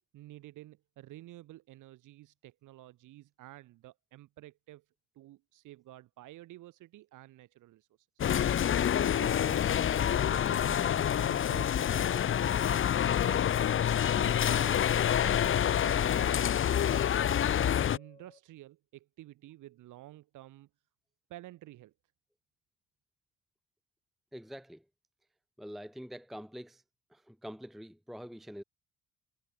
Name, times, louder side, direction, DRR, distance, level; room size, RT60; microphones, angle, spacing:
voice 1, 0.0-4.8 5.2-7.9 8.8-9.7 10.0-12.9 13.2-13.7 14.1-17.5 17.9-20.7 21.3-21.9, right 16 dB, 85° right, 2.1 m, -51 dB
sound 1, 8.2-18.0, left 9 dB, 45° left, 0.7 m, -27 dB
sound 2, 10.4-18.4, left 3 dB, 20° left, 7.3 m, -57 dB
voice 2, 24.3-24.8 25.6-26.8 27.1-28.6, equal, ahead, 0.8 m, -45 dB
cardioid pair, 90°, 30 cm